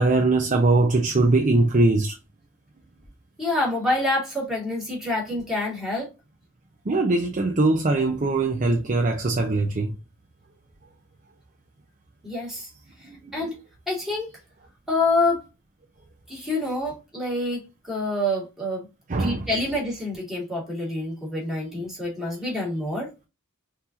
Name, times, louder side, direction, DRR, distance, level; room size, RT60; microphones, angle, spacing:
voice 1, 0.0-2.2 6.8-10.0 13.0-13.5 19.1-19.7 21.7-21.9, right 2 dB, 35° right, 0.6 m, -22 dB
voice 2, 3.4-6.1 12.2-12.7 13.0-13.5 13.9-14.3 14.9-15.4 16.3-18.8 19.2-23.1, left 2 dB, ahead, 2.4 m, -27 dB
5.7 x 2.9 x 2.8 m
head